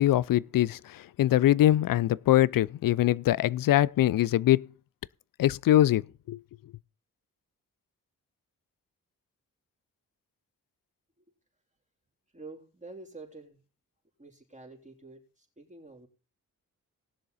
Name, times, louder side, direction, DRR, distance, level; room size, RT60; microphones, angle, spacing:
voice 1, 0.0-4.7 5.4-6.0 6.3-6.4, left 13 dB, 65° left, 0.5 m, -23 dB
voice 2, 12.3-13.6 14.2-16.1, right 3 dB, 20° right, 3.6 m, -48 dB
19.5 x 6.7 x 4.1 m
supercardioid pair, 45°, 37 cm